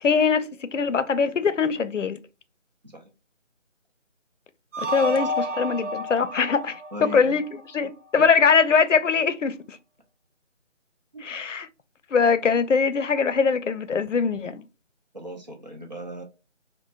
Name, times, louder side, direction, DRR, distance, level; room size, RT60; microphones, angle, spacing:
voice 1, 0.0-2.2 4.8-9.8 11.2-11.7 12.1-14.6, left 5 dB, 80° left, 0.6 m, -22 dB
sound 1, 4.7-7.9, equal, 75° right, 0.9 m, -31 dB
voice 2, 6.9-7.4 8.2-8.3 11.1-11.2 15.1-16.2, equal, 35° right, 0.7 m, -37 dB
4.3 x 2.1 x 2.4 m
figure-of-eight pair, 170°, 37 cm